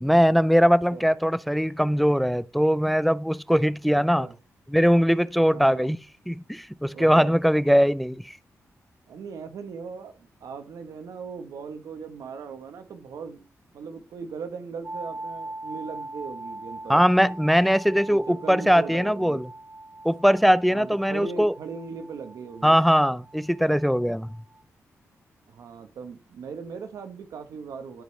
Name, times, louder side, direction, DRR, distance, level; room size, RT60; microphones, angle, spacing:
voice 1, 0.0-4.3 4.7-6.0 6.3-8.4 16.9-19.5 20.0-21.5 22.6-24.3, equal, ahead, 0.5 m, -21 dB
voice 2, 5.5-5.9 6.9-7.4 9.1-10.1 10.4-13.5 13.7-17.3 18.1-19.4 20.7-22.8 25.5-28.0, right 5 dB, 85° right, 1.1 m, -38 dB
sound 1, 14.8-24.6, right 2 dB, 40° right, 0.9 m, -41 dB
14.0 x 5.1 x 3.2 m
cardioid pair, 70°, 6 cm